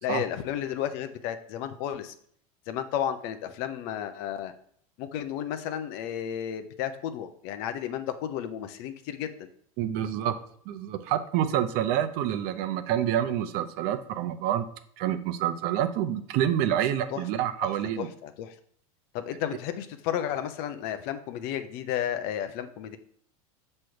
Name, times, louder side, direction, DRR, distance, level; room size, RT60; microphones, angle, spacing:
voice 1, 0.0-2.1 2.7-4.5 5.0-9.5 16.7-16.8 17.1-17.2 17.6-17.7 18.0-18.5 19.1-23.0, left 10 dB, 60° left, 10 dB, 0.7 m, -33 dB
voice 2, 9.8-10.3 10.7-14.7 15.0-18.1, right 10 dB, 55° right, 10 dB, 0.7 m, -27 dB
6.2 x 3.3 x 5.7 m, 0.62 s
hypercardioid pair, 95°, 19 cm